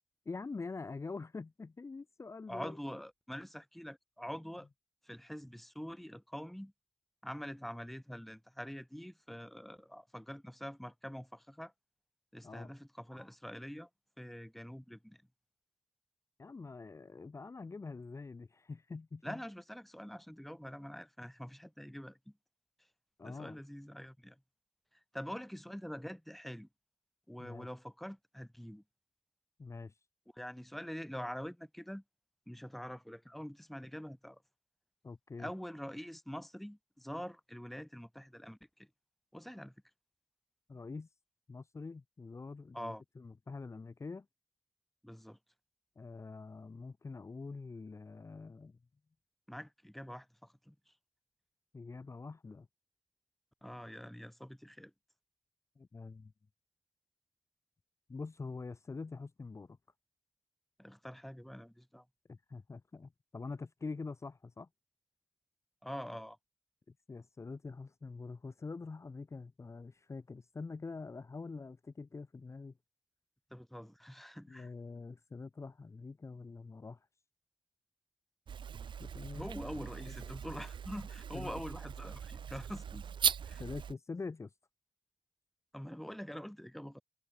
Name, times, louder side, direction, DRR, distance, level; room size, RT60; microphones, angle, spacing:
voice 1, 0.2-2.8 12.4-12.7 16.4-19.4 23.2-23.6 27.4-27.7 29.6-29.9 35.0-35.5 40.7-41.1 41.5-44.3 46.0-48.8 51.7-52.7 55.8-56.3 58.1-59.8 62.3-64.7 67.1-72.7 74.5-77.0 79.0-79.5 80.1-80.4 81.3-81.6 83.6-84.5, left 4 dB, 35° left, 1.2 m, -45 dB
voice 2, 2.5-4.7 5.0-6.7 7.2-11.7 12.3-13.9 14.2-15.2 19.2-22.3 23.2-24.4 24.9-26.7 27.3-28.8 30.3-32.0 32.5-34.4 35.4-38.9 39.3-39.7 42.7-43.0 45.0-45.4 49.5-50.9 53.6-54.9 60.8-62.0 65.8-66.4 73.5-74.7 79.3-83.1 83.4-83.6 85.7-87.0, equal, ahead, 1.8 m, -45 dB
sound 1, 78.5-83.9, right 7 dB, 65° right, 1.2 m, -39 dB
cardioid pair, 80°, 9 cm